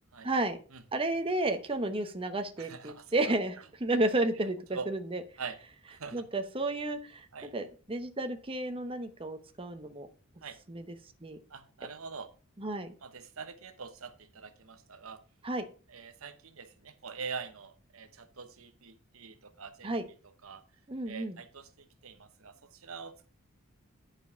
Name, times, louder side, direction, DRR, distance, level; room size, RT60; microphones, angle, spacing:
voice 1, 0.2-0.6 0.9-4.6 4.9-5.2 6.1-7.3 7.5-10.1 10.7-10.9 11.2-11.4 12.6-12.9 15.4-15.6 19.8-20.1 20.9-21.4, right 2 dB, 25° right, 0.9 m, -32 dB
voice 2, 2.6-3.3 4.7-4.9 5.4-5.6 5.9-6.2 7.3-7.5 10.4-10.6 11.5-12.3 13.0-15.2 15.9-20.0 20.4-20.6 21.1-23.3, right 5 dB, 80° right, 1.1 m, -44 dB
9.8 x 5.2 x 5.6 m
head